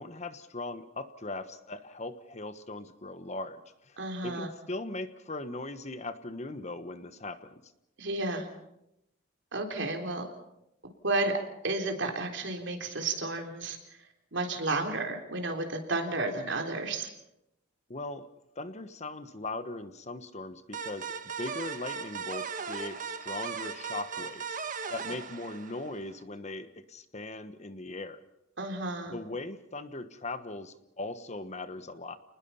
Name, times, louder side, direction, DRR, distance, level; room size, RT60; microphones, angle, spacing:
voice 1, 0.0-4.0 4.2-7.7 17.9-18.3 18.5-24.6 24.9-28.2 29.1-32.2, left 2 dB, 35° left, 11 dB, 1.2 m, -39 dB
voice 2, 4.0-4.5 8.0-8.5 9.5-10.3 11.0-11.3 11.6-13.8 14.3-17.1 28.6-29.2, right 2 dB, 65° right, 4 dB, 3.8 m, -32 dB
sound 1, 20.7-26.2, right 5 dB, 40° right, 1.6 m, -38 dB
29.5 x 20.0 x 5.7 m, 0.84 s
head